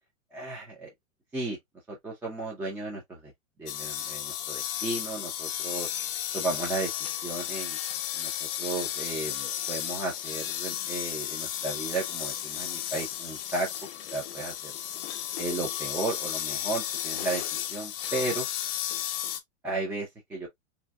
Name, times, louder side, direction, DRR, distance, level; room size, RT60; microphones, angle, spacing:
voice 1, 0.3-0.9 1.3-1.6 1.9-3.3 3.6-5.9 6.3-6.9 7.2-7.8 8.1-13.7 14.1-14.7 15.4-17.4 17.7-18.5 19.6-20.5, right 2 dB, 5° right, 0.3 m, -34 dB
sound 1, 3.7-19.4, left 11 dB, 50° left, 0.8 m, -34 dB
4.0 x 2.7 x 2.2 m
hypercardioid pair, 140°, 38 cm